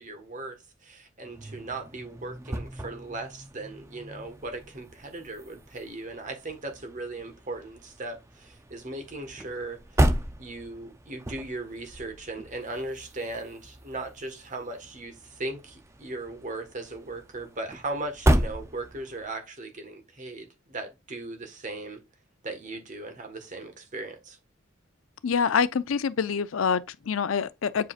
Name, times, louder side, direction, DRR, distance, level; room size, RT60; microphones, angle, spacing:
voice 1, 0.0-10.1 10.4-22.0 22.4-24.4, right 2 dB, 40° right, 1.6 m, -38 dB
sound 1, 1.2-19.3, right 1 dB, 15° right, 0.6 m, -33 dB
voice 2, 25.2-27.9, left 6 dB, 85° left, 0.5 m, -26 dB
8.0 x 4.9 x 2.5 m
head